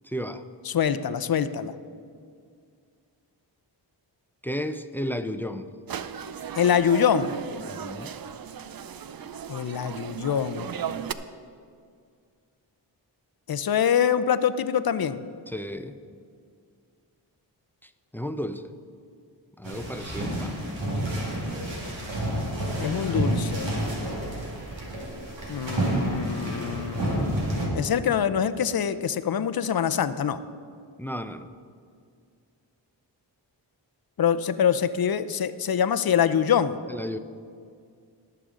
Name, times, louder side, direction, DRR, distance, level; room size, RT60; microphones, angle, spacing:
voice 1, 0.0-0.4 4.4-5.7 7.6-8.1 15.5-16.0 17.8-18.7 19.6-20.6 31.0-31.5 36.9-37.2, equal, 5° left, 10 dB, 0.5 m, -33 dB
voice 2, 0.7-1.7 6.5-7.3 9.5-10.7 13.5-15.2 22.8-23.7 25.5-27.3 27.7-30.4 34.2-36.8, left 8 dB, 55° left, 12 dB, 0.6 m, -25 dB
sound 1, 5.9-11.1, right 8 dB, 55° right, 0.6 m, -36 dB
sound 2, 19.6-27.7, right 1 dB, 90° right, 2.2 m, -29 dB
19.0 x 6.7 x 3.8 m, 2.2 s
cardioid pair, 55°, 44 cm